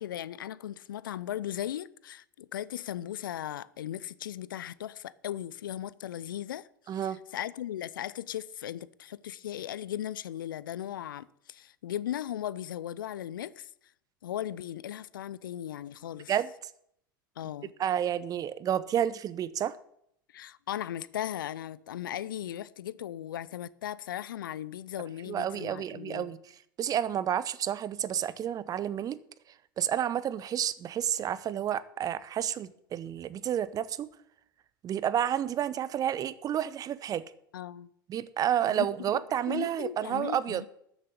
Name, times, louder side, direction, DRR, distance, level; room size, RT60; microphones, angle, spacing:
voice 1, 0.0-6.7 7.0-13.7 14.2-16.3 17.4-17.7 20.3-26.3 37.5-37.9 38.6-38.9 39.5-40.7, left 11 dB, 70° left, 0.5 m, -37 dB
voice 2, 6.9-7.2 16.3-16.5 17.8-19.8 25.3-26.4 26.8-29.2 29.8-34.1 34.8-37.2 38.1-40.6, right 10 dB, 35° right, 0.8 m, -30 dB
13.0 x 7.5 x 6.8 m
figure-of-eight pair, 80°, 11 cm